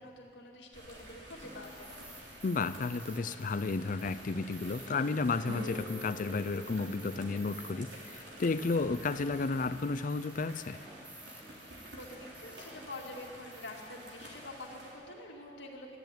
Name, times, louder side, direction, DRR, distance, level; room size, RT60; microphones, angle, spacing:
voice 1, 0.0-1.9 11.6-16.0, left 2 dB, 85° left, -1 dB, 2.3 m, -47 dB
sound 1, 0.7-14.9, right 1 dB, 85° right, 3.3 m, -50 dB
sound 2, 1.4-14.5, right 1 dB, 10° right, 0.9 m, -54 dB
voice 2, 2.4-10.8, left 3 dB, 50° left, 13 dB, 0.5 m, -32 dB
sound 3, 5.4-10.6, left 1 dB, 70° right, 1.9 m, -48 dB
14.0 x 10.5 x 9.0 m, 2.6 s
head